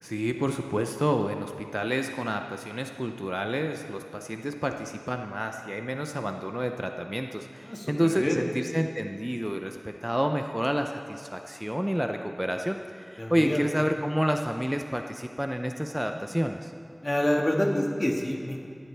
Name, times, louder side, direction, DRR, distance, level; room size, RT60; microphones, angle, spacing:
voice 1, 0.0-16.7, equal, 10° right, 5 dB, 0.6 m, -29 dB
voice 2, 7.6-8.4 13.2-13.6 17.0-18.6, left 1 dB, 40° left, 0 dB, 1.8 m, -27 dB
15.5 x 13.5 x 3.4 m, 2.4 s
wide cardioid pair, 45°, 0 cm